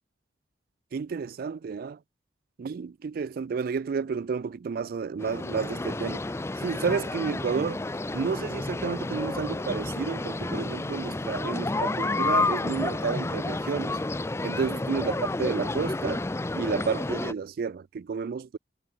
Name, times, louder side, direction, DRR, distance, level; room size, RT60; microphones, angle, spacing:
voice 1, 0.9-2.0 2.6-6.2 6.6-7.8 8.1-14.0 14.4-16.2 16.5-18.6, right 5 dB, 55° right, 0.3 m, -31 dB
sound 1, 5.2-17.3, left 2 dB, 15° left, 0.5 m, -30 dB
head